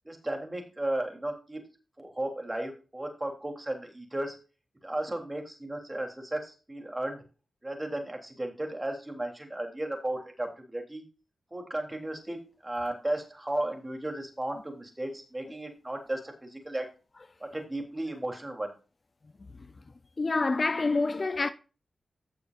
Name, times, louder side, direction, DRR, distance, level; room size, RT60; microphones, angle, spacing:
voice 1, 0.0-1.6 2.0-4.4 4.8-7.2 7.6-11.0 11.5-16.9 17.4-18.7, right 1 dB, 20° right, 3.5 m, -35 dB
voice 2, 20.2-21.5, left 3 dB, 45° left, 0.6 m, -27 dB
15.5 x 6.8 x 2.6 m
cardioid pair, 50°, 0 cm